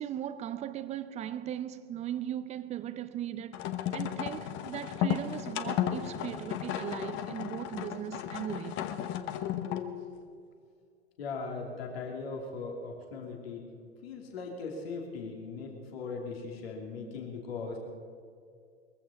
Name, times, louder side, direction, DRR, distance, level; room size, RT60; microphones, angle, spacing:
voice 1, 0.0-3.6 3.9-8.8, right 10 dB, 20° right, 0.6 m, -38 dB
sound 1, 3.5-10.0, left 10 dB, 35° left, 1.1 m, -34 dB
voice 2, 11.2-13.7 14.0-17.8, left 4 dB, 60° left, 3.0 m, -39 dB
22.0 x 15.0 x 4.3 m
figure-of-eight pair, 95°, 34 cm